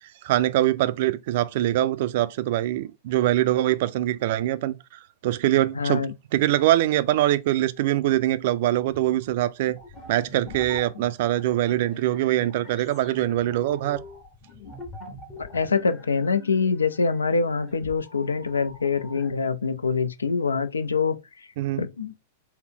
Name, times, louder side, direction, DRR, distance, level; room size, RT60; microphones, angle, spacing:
voice 1, 0.2-4.8 5.2-9.8 10.1-14.0 21.6-21.8, right 14 dB, 55° right, 0.3 m, -23 dB
voice 2, 5.8-6.1 15.5-21.2 21.8-22.1, left 5 dB, 80° left, 0.4 m, -24 dB
sound 1, 8.9-9.3 9.7-19.3, left 2 dB, 35° left, 1.3 m, -44 dB
4.0 x 2.0 x 3.7 m
figure-of-eight pair, 100°, 0 cm